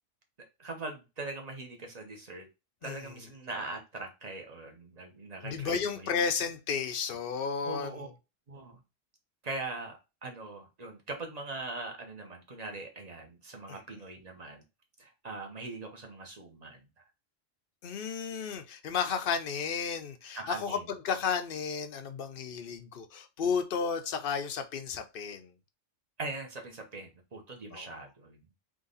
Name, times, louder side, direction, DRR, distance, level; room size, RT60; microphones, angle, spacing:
voice 1, 0.6-2.5 2.8-6.2 7.6-8.1 8.5-8.8 9.4-14.6 15.0-17.0 20.4-20.8 26.2-28.5, right 2 dB, 35° right, 1.1 m, -41 dB
voice 2, 5.4-8.1 13.7-13.8 17.8-25.5 27.7-27.9, left 6 dB, 55° left, 0.7 m, -33 dB
3.8 x 3.2 x 3.9 m
omnidirectional pair, 1.3 m